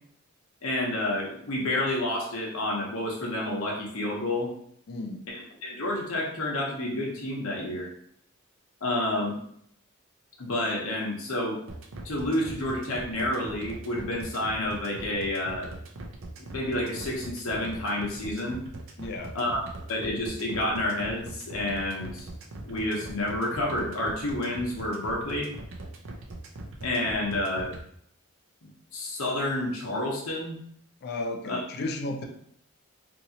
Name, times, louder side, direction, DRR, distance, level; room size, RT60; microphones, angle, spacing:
voice 1, 0.6-4.5 5.3-7.9 8.8-9.4 10.4-11.6 12.0-15.7 16.5-18.6 19.3-19.6 19.9-22.3 22.7-25.5 26.8-27.7 28.9-30.6 31.4-31.6, left 1 dB, 75° left, -2 dB, 0.8 m, -29 dB
voice 2, 4.9-5.3 19.0-19.4 31.0-32.2, left 2 dB, 50° left, 4 dB, 0.4 m, -34 dB
sound 1, 11.7-27.8, right 2 dB, 60° right, 0.5 m, -41 dB
2.9 x 2.7 x 2.7 m, 0.67 s
head